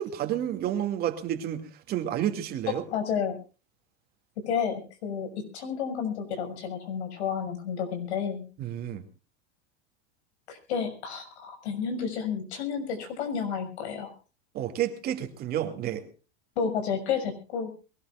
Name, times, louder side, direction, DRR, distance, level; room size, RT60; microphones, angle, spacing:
voice 1, 0.0-2.8 8.6-9.0 14.5-16.0, right 11 dB, 30° right, 6 dB, 2.5 m, -30 dB
voice 2, 2.9-3.4 4.5-5.3 5.5-8.4 10.5-14.1 16.6-17.7, left 7 dB, 90° left, 7 dB, 6.5 m, -31 dB
23.0 x 18.0 x 2.5 m, 0.34 s
supercardioid pair, 165°, 32 cm